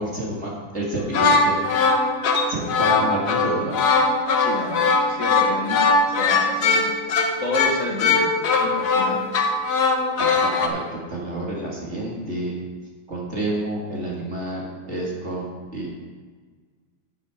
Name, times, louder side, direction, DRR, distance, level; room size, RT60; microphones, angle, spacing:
voice 1, 0.0-1.7 2.5-3.8 10.2-12.5 13.1-15.4 15.7-15.9, right 1 dB, 35° right, -3 dB, 2.3 m, -29 dB
sound 1, 1.0-10.7, left 4 dB, 55° left, 1.5 m, -20 dB
voice 2, 4.4-6.8 7.4-8.2 8.6-9.5, left 2 dB, 40° left, -2 dB, 1.5 m, -30 dB
9.9 x 9.2 x 4.9 m, 1.5 s
omnidirectional pair, 2.2 m